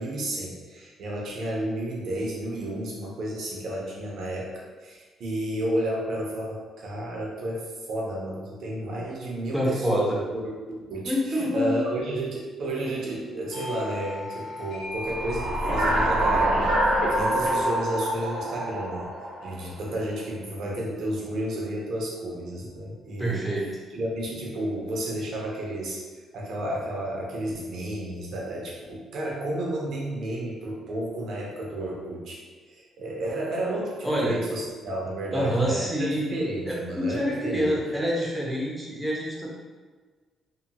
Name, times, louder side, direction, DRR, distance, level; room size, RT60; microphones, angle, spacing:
voice 1, 0.0-4.5 4.8-16.7 17.1-19.1 19.4-23.5 23.9-37.7, right 1 dB, 70° right, -2 dB, 0.8 m, -32 dB
voice 2, 9.5-10.2 11.0-11.8 23.2-23.7 34.0-34.4 35.3-36.3 36.7-39.5, equal, 5° right, -4 dB, 0.8 m, -26 dB
Doorbell, 13.5-18.8, left 2 dB, 65° left, 1.1 m, -40 dB
sound 1, 15.0-19.7, right 1 dB, 90° right, 1.0 m, -25 dB
2.9 x 2.7 x 2.2 m, 1.4 s
cardioid pair, 90°, 0 cm